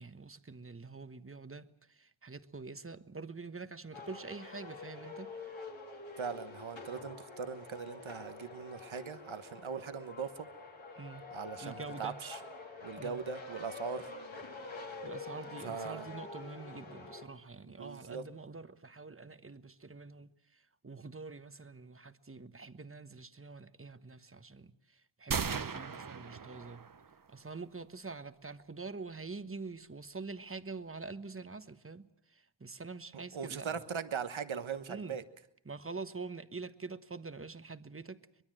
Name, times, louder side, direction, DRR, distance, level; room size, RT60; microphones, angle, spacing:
voice 1, 0.0-5.3 11.0-11.2 11.6-12.2 13.0-13.2 15.0-26.9 27.3-33.7 34.9-35.2 35.6-38.3, right 4 dB, 30° right, 1.2 m, -46 dB
sound 1, 3.9-17.3, left 3 dB, 75° left, 3.5 m, -47 dB
voice 2, 6.2-10.5 11.3-12.4 12.8-14.1 15.6-16.1 17.6-18.2 33.3-35.2, right 6 dB, 80° right, 1.3 m, -40 dB
sound 2, 25.3-27.2, right 6 dB, 45° right, 0.9 m, -37 dB
23.5 x 21.5 x 7.7 m
cardioid pair, 50°, 47 cm